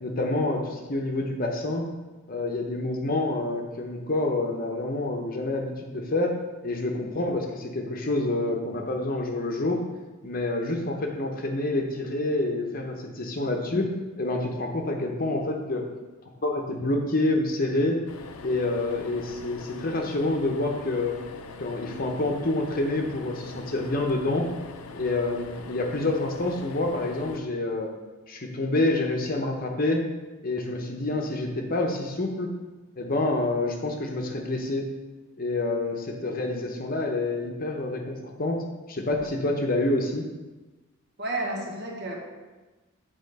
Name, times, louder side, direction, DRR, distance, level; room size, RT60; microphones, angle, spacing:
voice 1, 0.0-1.9 2.3-6.3 6.6-9.8 10.2-13.9 14.2-15.8 16.4-18.0 18.4-21.2 21.6-24.5 24.9-27.9 28.3-30.0 30.4-32.5 33.0-34.9 35.4-38.6 38.9-40.3, left 2 dB, 40° left, 2 dB, 0.8 m, -27 dB
sound 1, 18.1-27.4, left 4 dB, 80° left, 0.6 m, -43 dB
voice 2, 41.2-42.2, right 2 dB, 50° right, -1 dB, 1.4 m, -31 dB
8.7 x 3.7 x 5.4 m, 1.2 s
head